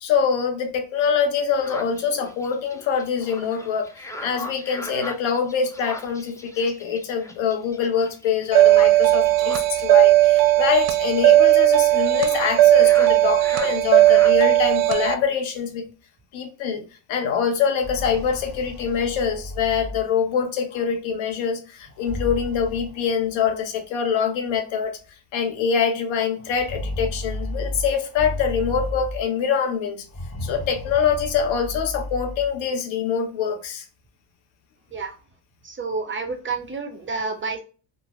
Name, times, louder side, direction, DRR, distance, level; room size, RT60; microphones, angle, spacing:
voice 1, 0.0-3.9 4.2-15.9 16.3-25.0 25.3-30.1 30.4-33.9, left 7 dB, 70° left, 0.9 m, -24 dB
sound 1, 1.5-14.4, left 1 dB, 10° left, 0.3 m, -40 dB
sound 2, 8.5-15.1, right 15 dB, 70° right, 0.6 m, -16 dB
sound 3, 17.6-20.5 21.8-23.5 24.5-24.6 25.0-25.1 26.4-29.5 30.0-32.6, left 1 dB, 30° left, 1.1 m, -33 dB
voice 2, 35.6-37.6, right 4 dB, 25° right, 0.7 m, -29 dB
3.0 x 2.5 x 2.3 m
supercardioid pair, 85°, 48 cm